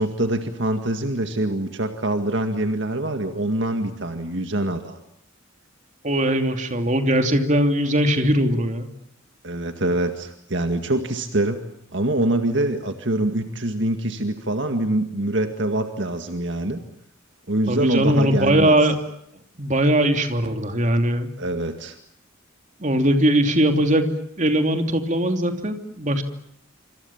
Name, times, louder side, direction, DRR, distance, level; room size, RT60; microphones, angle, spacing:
voice 1, 0.0-5.0 9.4-11.6 11.9-16.8 17.5-18.8 21.4-22.0, right 1 dB, 60° right, 6 dB, 2.0 m, -24 dB
voice 2, 6.0-8.9 17.7-19.0 19.6-21.3 22.8-24.0 24.4-26.2, right 1 dB, 35° right, 6 dB, 2.9 m, -20 dB
27.0 x 26.5 x 7.3 m, 0.71 s
head